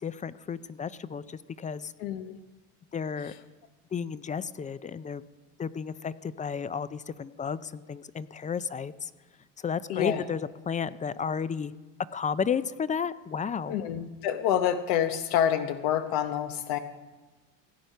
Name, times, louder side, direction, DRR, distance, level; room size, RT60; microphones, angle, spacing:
voice 1, 0.0-1.9 2.9-3.3 3.9-5.2 5.6-9.1 9.6-11.7 12.1-13.8, left 6 dB, 20° left, 16 dB, 0.4 m, -32 dB
voice 2, 2.0-2.4 3.2-3.3 9.9-10.2 13.7-16.8, left 10 dB, 80° left, 7 dB, 1.0 m, -27 dB
16.5 x 9.0 x 5.5 m, 1.2 s
supercardioid pair, 100°, 37 cm